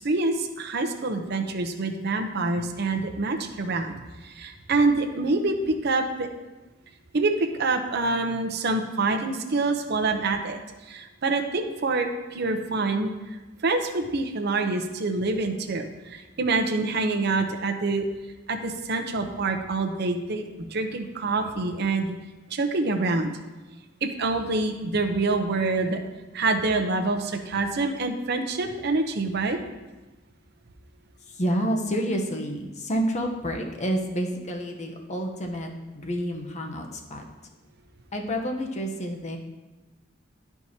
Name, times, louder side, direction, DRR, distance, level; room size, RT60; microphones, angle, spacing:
voice 1, 0.0-3.9 4.2-6.3 7.1-10.6 10.9-13.1 13.6-18.1 18.5-22.2 22.5-23.3 24.0-26.0 26.3-29.6, right 3 dB, 55° right, 5 dB, 0.7 m, -26 dB
voice 2, 31.2-37.3 38.1-39.4, equal, 35° left, 2 dB, 0.8 m, -29 dB
12.0 x 4.6 x 2.8 m, 1.1 s
head